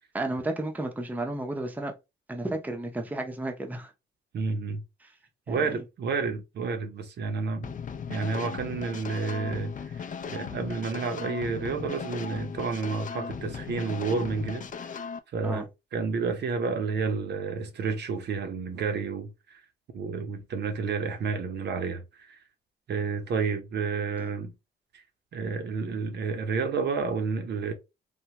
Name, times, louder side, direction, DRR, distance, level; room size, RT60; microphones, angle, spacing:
voice 1, 0.1-1.9 2.3-3.9 5.0-5.1 5.5-5.8 15.4-15.6, right 2 dB, 10° right, 0.7 m, -32 dB
voice 2, 4.3-4.8 5.5-7.7 8.1-15.1 15.3-15.7 15.9-19.6 19.9-22.4 22.9-24.5 24.9-25.0 25.3-27.7, right 4 dB, 60° right, 0.7 m, -30 dB
sound 1, 7.6-15.2, left 6 dB, 40° left, 0.4 m, -37 dB
3.4 x 2.2 x 2.9 m
cardioid pair, 90°, 20 cm